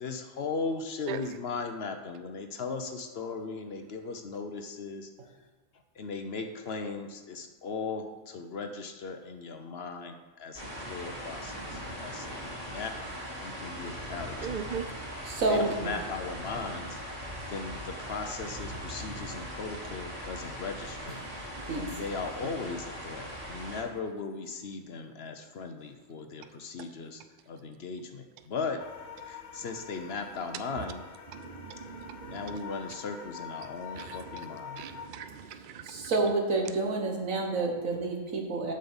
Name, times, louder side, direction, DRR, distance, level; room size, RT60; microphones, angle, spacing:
voice 1, 0.0-5.1 6.0-12.4 12.6-14.6 15.3-17.0 17.5-21.2 21.8-28.8 29.2-31.0 32.2-34.8, left 4 dB, 55° left, 6 dB, 0.9 m, -38 dB
sound 1, 10.5-23.8, equal, 30° right, 3.0 m, -40 dB
voice 2, 14.4-14.8 31.3-32.6 34.0-34.2 34.8-36.1, right 8 dB, 60° right, 10 dB, 0.5 m, -39 dB
voice 3, 15.2-15.9 21.7-21.9 35.8-38.7, right 3 dB, 90° right, 1 dB, 1.8 m, -29 dB
sound 2, 28.8-35.1, left 6 dB, 85° left, 1.3 m, -45 dB
7.4 x 5.4 x 7.1 m, 1.3 s
omnidirectional pair, 1.4 m